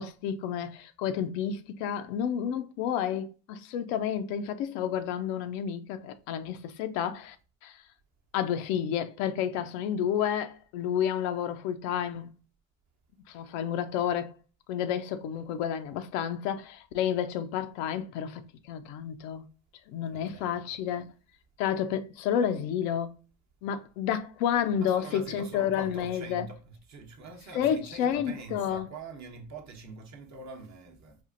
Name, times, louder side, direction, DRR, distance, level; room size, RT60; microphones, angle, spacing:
voice 1, 0.0-7.4 7.6-7.8 8.3-12.3 13.3-14.3 14.7-19.4 19.9-21.1 21.6-23.1 23.6-26.5 27.5-28.9, left 9 dB, 75° left, 0.5 m, -30 dB
voice 2, 20.1-20.7 24.8-31.2, right 4 dB, 45° right, 0.9 m, -44 dB
4.3 x 2.4 x 2.4 m
hypercardioid pair, 65°, 40 cm